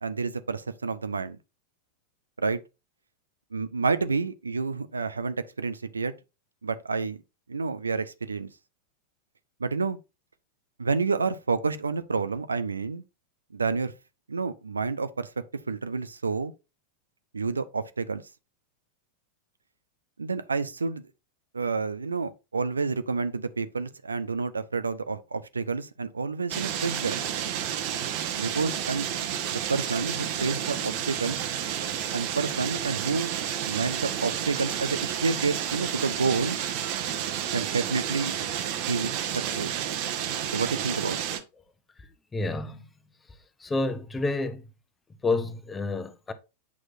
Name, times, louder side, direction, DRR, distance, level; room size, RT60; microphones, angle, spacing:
voice 1, 0.0-1.4 2.4-2.6 3.5-6.1 6.6-7.2 7.5-8.5 9.6-10.0 10.8-13.0 13.5-13.9 14.3-15.3 15.7-16.5 17.3-18.2 20.2-21.0 21.5-27.2 28.4-29.1 29.5-31.4 32.1-33.3 33.7-36.6 37.5-38.4 38.9-39.7 40.5-41.2, right 4 dB, 75° right, 0.5 m, -29 dB
sound 1, 26.5-41.4, right 10 dB, 45° right, 1.0 m, -31 dB
voice 2, 42.3-42.8 43.6-44.7 45.2-46.3, left 3 dB, 15° left, 0.9 m, -29 dB
8.4 x 6.2 x 2.6 m
figure-of-eight pair, 90°, 0 cm